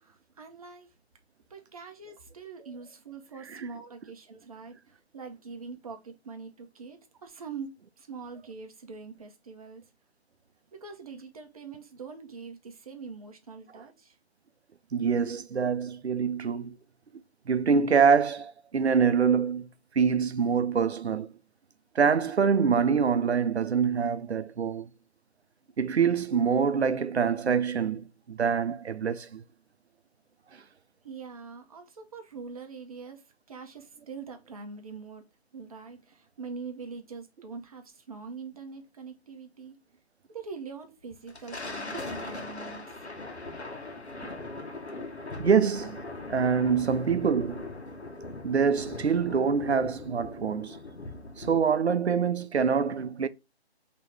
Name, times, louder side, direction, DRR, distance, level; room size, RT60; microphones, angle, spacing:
voice 1, 0.0-0.9 1.5-4.7 5.1-9.8 10.8-14.1 31.0-33.2 33.5-35.2 35.5-39.8 40.3-42.9, right 5 dB, 35° right, 0.8 m, -43 dB
voice 2, 14.9-16.8 17.5-19.7 20.0-21.3 22.0-24.9 25.8-29.4 44.2-44.3 45.4-46.0 46.3-47.7 48.4-50.8 51.4-53.3, right 6 dB, 80° right, 0.6 m, -25 dB
Thunder, 41.1-51.9, left 2 dB, 85° left, 1.2 m, -40 dB
4.5 x 3.0 x 3.4 m
figure-of-eight pair, 145°, 32 cm